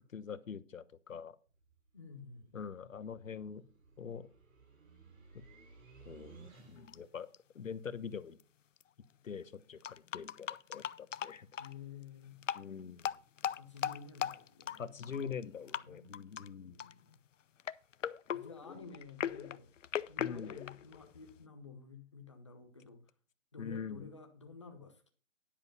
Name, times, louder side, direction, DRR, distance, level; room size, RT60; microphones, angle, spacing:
voice 1, 0.1-1.4 2.5-3.6 4.0-4.3 5.3-5.4 6.0-7.3 7.5-8.4 9.2-11.5 12.5-13.1 14.8-16.8 20.2-20.6 23.6-24.1, left 6 dB, 90° left, 1.1 m, -44 dB
sound 1, 1.5-7.1, right 4 dB, 85° right, 4.2 m, -59 dB
voice 2, 1.9-2.5 11.6-12.4 13.5-16.1 16.6-17.2 18.3-19.7 20.1-23.0 23.5-25.1, left 5 dB, 25° left, 0.9 m, -52 dB
sound 2, 6.9-7.0 7.3-7.4 8.4-8.5 8.8-8.9 9.8-11.7 12.4-12.6 13.0-15.4 15.7-15.8 16.1-16.5 16.8-17.1 17.6-21.4, left 9 dB, 70° left, 0.6 m, -39 dB
10.5 x 6.0 x 5.6 m
hypercardioid pair, 180°, 39 cm